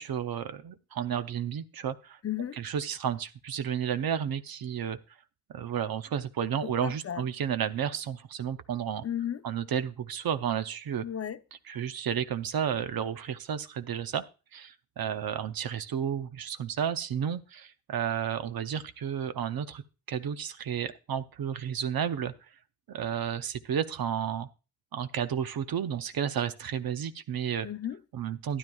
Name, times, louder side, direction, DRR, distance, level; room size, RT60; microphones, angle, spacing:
voice 1, 0.0-2.2 2.6-5.0 5.5-9.0 9.4-11.0 11.7-14.2 14.5-19.8 20.1-22.3 22.9-24.5 24.9-27.7 28.1-28.6, right 8 dB, 80° right, 0.7 m, -32 dB
voice 2, 2.2-2.6 6.6-7.2 9.0-9.4 11.0-11.4 27.6-28.0, left 10 dB, 40° left, 0.6 m, -34 dB
12.5 x 10.5 x 2.3 m
wide cardioid pair, 100°, 36 cm